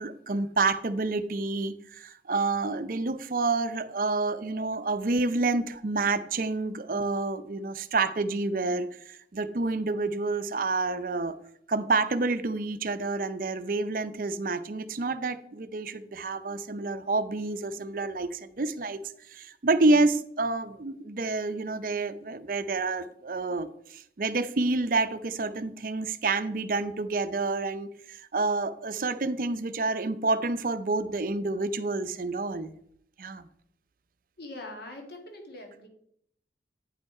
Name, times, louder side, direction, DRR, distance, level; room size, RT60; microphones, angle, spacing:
voice 1, 0.0-11.4 11.7-19.0 19.3-32.7 33.2-33.5, right 3 dB, 50° right, 12 dB, 0.5 m, -28 dB
voice 2, 34.4-35.9, left 2 dB, 60° left, 3 dB, 1.8 m, -42 dB
9.2 x 5.3 x 4.8 m, 0.70 s
head